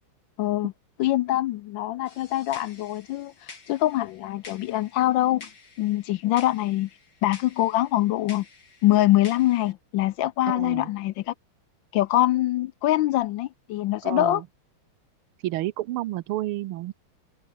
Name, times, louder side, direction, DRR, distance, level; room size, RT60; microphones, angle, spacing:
voice 1, 0.4-0.7 1.0-5.5 5.8-6.9 7.2-8.4 8.8-11.3 11.9-14.4, left 15 dB, 75° left, 1.2 m, -24 dB
sound 1, 2.1-9.7, left 4 dB, 50° left, 4.0 m, -49 dB
voice 2, 10.5-10.9 14.0-14.4 15.4-16.9, right 16 dB, 85° right, 1.6 m, -30 dB
omnidirectional pair, 2.3 m